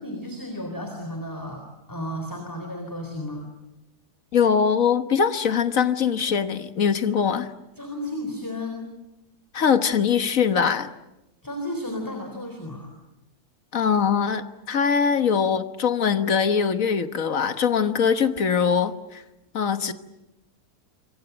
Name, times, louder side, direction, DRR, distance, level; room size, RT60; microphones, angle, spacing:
voice 1, 0.0-3.5 7.8-8.9 11.4-12.9, left 1 dB, 10° left, 4 dB, 3.7 m, -33 dB
voice 2, 4.3-7.5 9.5-10.9 13.7-19.2 19.5-19.9, left 7 dB, 60° left, 10 dB, 1.6 m, -22 dB
26.5 x 23.5 x 8.0 m, 0.96 s
omnidirectional pair, 1.6 m